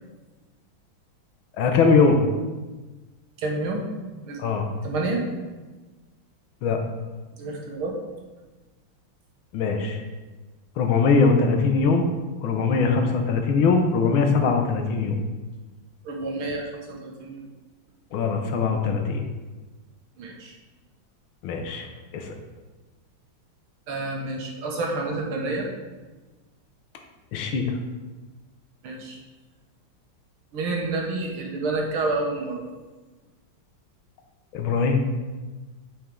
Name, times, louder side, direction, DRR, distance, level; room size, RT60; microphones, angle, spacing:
voice 1, 1.6-2.3 4.4-4.7 6.6-6.8 9.5-10.0 10.8-12.1 12.4-15.2 18.1-19.2 21.4-21.9 22.1-22.3 27.3-27.6 34.5-35.0, left 4 dB, 75° left, 4 dB, 1.7 m, -21 dB
voice 2, 3.4-3.9 4.2-4.4 4.8-5.2 7.4-7.9 16.0-17.4 20.2-20.6 23.9-25.7 28.8-29.2 30.5-32.7, right 2 dB, 85° right, 0 dB, 2.1 m, -29 dB
8.8 x 5.5 x 3.7 m, 1.2 s
omnidirectional pair, 2.3 m